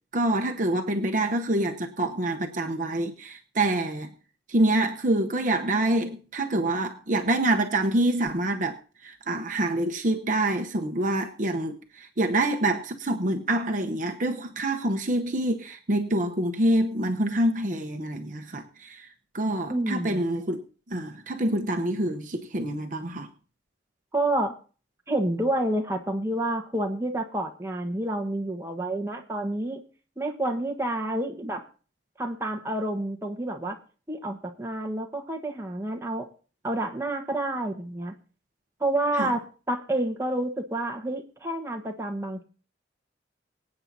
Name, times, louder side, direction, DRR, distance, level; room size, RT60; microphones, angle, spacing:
voice 1, 0.1-4.1 4.5-8.8 9.0-19.1 19.3-20.6 20.9-23.3 39.2-39.3, right 1 dB, 45° right, 0.9 m, -26 dB
voice 2, 19.7-20.3 24.1-24.6 25.1-29.8 30.2-31.6 32.2-33.8 34.1-36.3 36.6-38.1 38.8-42.4, right 1 dB, 15° right, 1.3 m, -29 dB
25.0 x 8.7 x 2.8 m
head